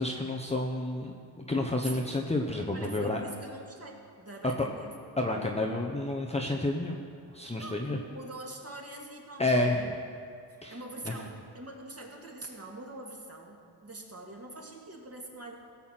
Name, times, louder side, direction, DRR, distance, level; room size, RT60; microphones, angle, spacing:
voice 1, 0.0-3.2 5.2-7.0 7.3-8.0 9.4-9.8 10.6-10.8 11.0-11.1, left 2 dB, 15° left, 0 dB, 1.0 m, -30 dB
voice 2, 2.7-4.9 7.6-9.9 10.7-15.5, right 2 dB, 30° right, -1 dB, 2.4 m, -44 dB
16.5 x 7.1 x 6.0 m, 2.4 s
cardioid pair, 75°, 49 cm